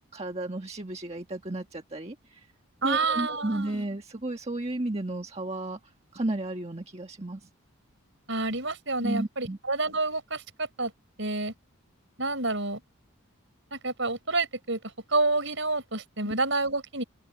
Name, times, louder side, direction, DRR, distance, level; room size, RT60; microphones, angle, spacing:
voice 1, 0.1-2.5 2.8-5.8 6.1-7.5 9.0-9.6 16.2-16.3, right 2 dB, 30° right, 1.6 m, -33 dB
voice 2, 2.8-3.8 8.3-10.9 11.2-11.5 12.2-12.8 13.7-14.8 15.1-17.0, right 3 dB, 60° right, 5.7 m, -28 dB
open air
head